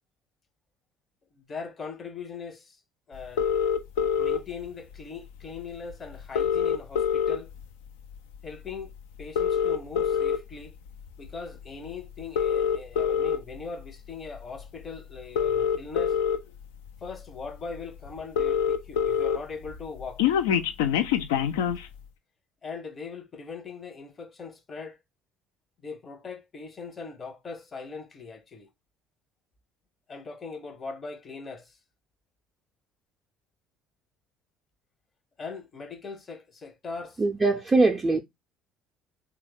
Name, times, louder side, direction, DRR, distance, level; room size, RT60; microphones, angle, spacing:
voice 1, 1.3-2.8 3.1-3.5 4.2-7.5 8.4-10.7 11.2-16.2 17.0-20.3 22.6-25.0 25.8-28.7 30.1-31.8 35.4-37.2, left 4 dB, 35° left, 0.7 m, -40 dB
sound 1, 3.4-4.4 5.6-5.7 5.9-6.0 6.2-7.6 8.1-8.4 9.2-10.4 11.1-11.3 12.2-13.4 14.6-14.7 15.2-16.4 17.0-17.1 17.4-17.5 17.8-17.9 18.1-19.4 19.7-21.8, left 8 dB, 75° left, 0.3 m, -25 dB
voice 2, 37.2-38.2, right 3 dB, 25° right, 0.4 m, -22 dB
3.1 x 2.3 x 3.2 m
hypercardioid pair, 60°, 0 cm